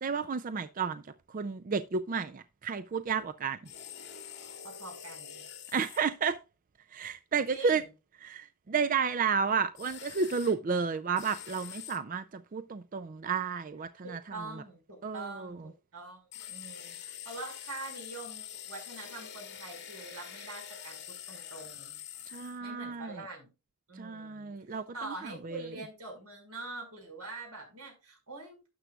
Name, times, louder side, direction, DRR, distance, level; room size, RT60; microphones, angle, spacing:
voice 1, 0.0-1.0 1.3-3.6 5.7-6.4 6.9-7.8 8.2-14.2 15.0-15.5 22.3-23.2 24.0-25.7, right 5 dB, 35° right, 0.4 m, -32 dB
sound 1, 3.6-6.0 9.8-10.5 11.2-12.0 16.3-22.6, left 9 dB, 50° left, 2.2 m, -45 dB
voice 2, 4.6-5.5 7.5-7.9 14.0-16.2 16.5-22.0 22.6-23.5 23.9-28.7, right 2 dB, 85° right, 5.4 m, -44 dB
12.0 x 8.0 x 2.3 m
head